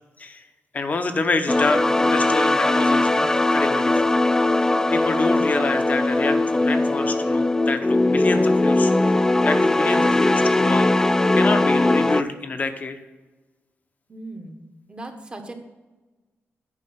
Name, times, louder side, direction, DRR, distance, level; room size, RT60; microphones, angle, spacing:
voice 1, 0.7-10.9 11.3-13.0, left 3 dB, 35° left, 8 dB, 1.0 m, -27 dB
sound 1, 1.5-12.2, left 2 dB, 10° left, 0.3 m, -20 dB
voice 2, 14.1-15.5, right 2 dB, 20° right, 5 dB, 1.2 m, -38 dB
9.8 x 5.2 x 7.4 m, 1.2 s
wide cardioid pair, 145°, 5 cm